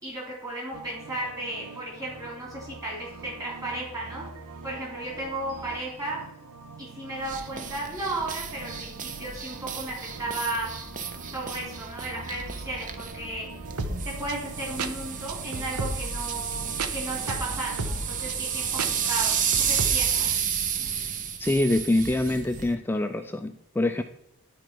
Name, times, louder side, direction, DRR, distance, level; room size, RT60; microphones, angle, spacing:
voice 1, 0.0-4.2 4.6-6.2 6.8-10.7 11.3-13.5 14.0-16.6 16.9-20.3, right 2 dB, 15° right, -4 dB, 3.2 m, -34 dB
sound 1, 0.7-20.4, right 3 dB, 85° right, 0.8 m, -39 dB
sound 2, 7.2-22.7, right 7 dB, 35° right, 0.6 m, -31 dB
voice 2, 21.4-24.0, left 2 dB, 10° left, 7 dB, 0.3 m, -25 dB
10.5 x 4.9 x 4.5 m, 0.83 s
head